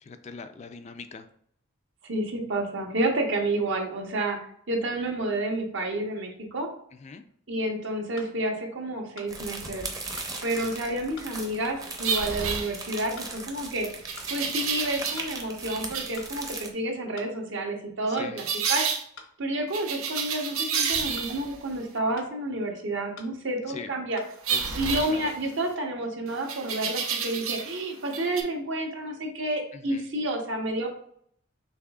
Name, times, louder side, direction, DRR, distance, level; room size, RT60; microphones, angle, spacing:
voice 1, 0.0-1.3 7.0-7.2 10.6-10.8 18.1-18.4 23.7-23.9 24.5-25.3 29.7-30.0, left 5 dB, 35° left, 8 dB, 0.3 m, -41 dB
voice 2, 2.1-4.4 4.7-6.7 7.5-9.8 10.4-13.9 14.3-18.8 19.4-24.2 24.7-30.9, right 1 dB, 60° right, 2 dB, 1.0 m, -30 dB
sound 1, 7.3-7.4 8.2-8.3 9.2-9.3 10.2-10.3 11.2-11.3 12.2-12.3 13.2-13.3 14.2-14.3 15.2-15.3 16.2-16.3 17.2-17.3 18.2-18.3 19.2-19.3 20.2-20.3 21.2-21.3 22.2-22.3 23.2-23.3 24.2-24.3, left 4 dB, 80° left, 0.9 m, -46 dB
sound 2, 9.3-16.7, right 3 dB, 15° right, 0.7 m, -39 dB
sound 3, 12.0-13.2 14.1-15.4 15.7-16.2 18.4-19.0 19.7-21.6 24.4-25.7 26.5-27.8 28.1-28.4, right 6 dB, 90° right, 0.7 m, -30 dB
5.9 x 3.4 x 2.4 m, 0.64 s
head